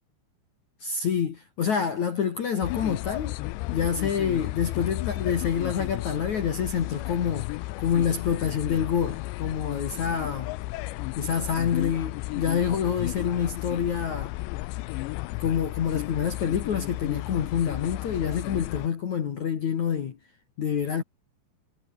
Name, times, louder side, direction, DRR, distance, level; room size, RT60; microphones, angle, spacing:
voice 1, 0.8-3.4 3.7-10.5 11.2-14.3 15.4-20.2 20.6-21.0, left 7 dB, 50° left, 2.6 m, -27 dB
sound 1, 2.6-18.9, left 21 dB, 85° left, 2.6 m, -33 dB
omnidirectional pair, 5.6 m